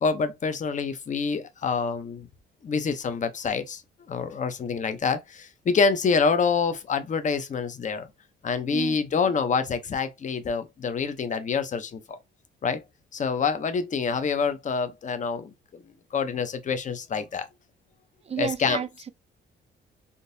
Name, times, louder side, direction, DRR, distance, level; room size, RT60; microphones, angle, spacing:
voice 1, 0.0-2.3 2.6-3.8 4.1-8.1 8.4-12.2 12.6-12.8 13.1-15.5 16.1-17.5 18.4-18.8, left 5 dB, 40° left, 0.7 m, -26 dB
voice 2, 18.3-19.1, right 7 dB, 30° right, 0.4 m, -31 dB
3.7 x 2.6 x 2.6 m
cardioid pair, 90°, 20 cm